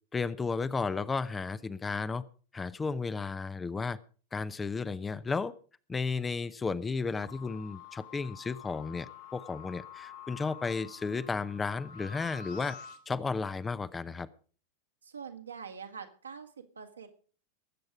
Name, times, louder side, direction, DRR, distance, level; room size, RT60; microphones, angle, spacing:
voice 1, 0.1-2.2 2.5-4.0 4.3-5.5 5.9-12.8 13.1-14.3, left 4 dB, 15° left, 15 dB, 0.7 m, -33 dB
sound 1, 7.2-13.0, left 7 dB, 50° left, 2.1 m, -48 dB
voice 2, 15.0-17.1, right 6 dB, 75° right, 5 dB, 1.9 m, -44 dB
20.5 x 7.9 x 4.9 m, 0.41 s
figure-of-eight pair, 90°, 0 cm